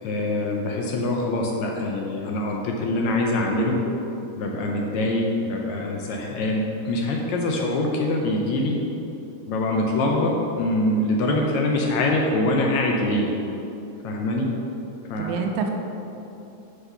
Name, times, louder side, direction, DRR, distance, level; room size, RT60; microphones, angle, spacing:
voice 1, 0.0-3.8 4.4-8.8 9.5-13.3 14.0-14.5 15.1-15.4, left 2 dB, 75° left, 0 dB, 1.8 m, -24 dB
voice 2, 11.3-11.6 15.2-15.7, right 6 dB, 80° right, 3 dB, 1.9 m, -28 dB
5.9 x 5.9 x 5.5 m, 3.0 s
omnidirectional pair, 3.6 m